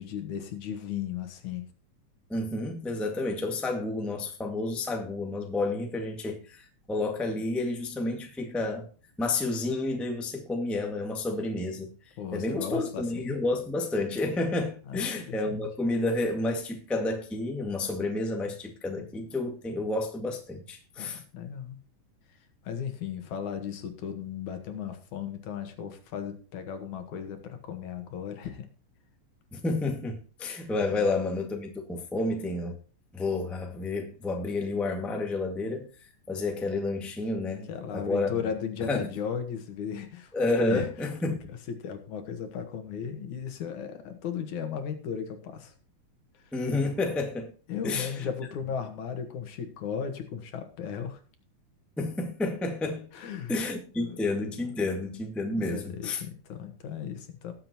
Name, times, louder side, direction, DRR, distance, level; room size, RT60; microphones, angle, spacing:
voice 1, 0.0-1.7 12.2-13.4 14.8-15.7 21.0-21.8 22.6-28.7 30.9-31.1 37.7-40.3 40.6-45.7 46.4-46.5 47.7-51.2 53.1-53.7 54.0-54.4 55.6-57.5, left 7 dB, 75° left, 2.8 m, -36 dB
voice 2, 2.3-8.9 9.2-11.9 12.3-21.2 29.5-32.7 33.1-35.9 36.3-38.3 38.9-39.1 40.3-41.4 46.5-47.5 47.8-48.3 52.0-53.1 53.5-56.2, left 2 dB, ahead, 1.1 m, -30 dB
19.0 x 7.7 x 2.9 m
omnidirectional pair, 3.5 m